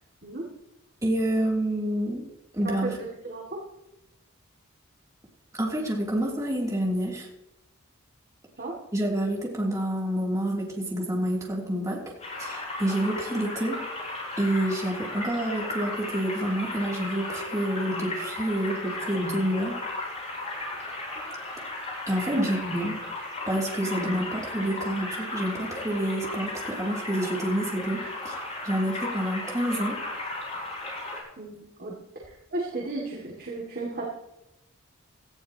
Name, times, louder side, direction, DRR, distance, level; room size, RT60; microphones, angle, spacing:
voice 1, 1.0-2.2 2.5-2.9 5.5-7.3 8.9-12.0 12.4-13.8 14.4-19.8 22.1-22.9 23.5-30.0, right 1 dB, 15° right, -3 dB, 3.2 m, -28 dB
voice 2, 2.6-3.4 8.6-8.7 22.4-22.5 31.4-31.9 32.3-34.0, right 2 dB, 45° right, -3 dB, 2.5 m, -34 dB
sound 1, 12.2-31.2, left 2 dB, 35° left, 6.6 m, -35 dB
18.5 x 14.5 x 3.0 m, 0.91 s
head